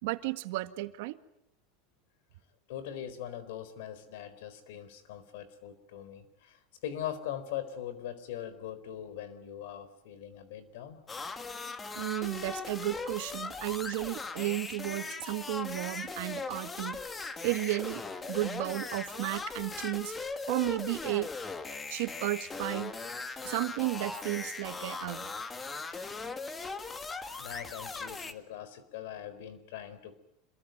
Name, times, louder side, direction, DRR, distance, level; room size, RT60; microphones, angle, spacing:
voice 1, 0.0-1.2 11.9-17.0 17.4-20.1 20.5-21.3 21.9-22.9 23.4-25.3, right 19 dB, 70° right, 11 dB, 1.7 m, -33 dB
voice 2, 2.7-11.0 27.4-30.2, left 10 dB, 75° left, 14 dB, 4.2 m, -41 dB
sound 1, 11.1-28.3, left 4 dB, 15° left, 1.9 m, -39 dB
27.0 x 22.0 x 9.3 m, 0.77 s
supercardioid pair, 135°, 0 cm